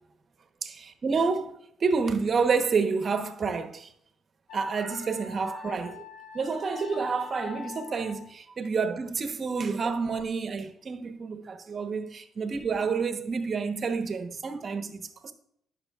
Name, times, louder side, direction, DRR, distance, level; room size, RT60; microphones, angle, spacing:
voice 1, 0.6-3.9 4.5-6.0 6.3-15.3, right 5 dB, 45° right, 1.1 m, -29 dB
Wind instrument woodwind instrument, 4.5-8.3, left 8 dB, 80° left, 1.6 m, -44 dB
15.5 x 6.3 x 2.5 m
cardioid pair, 90°, 0 cm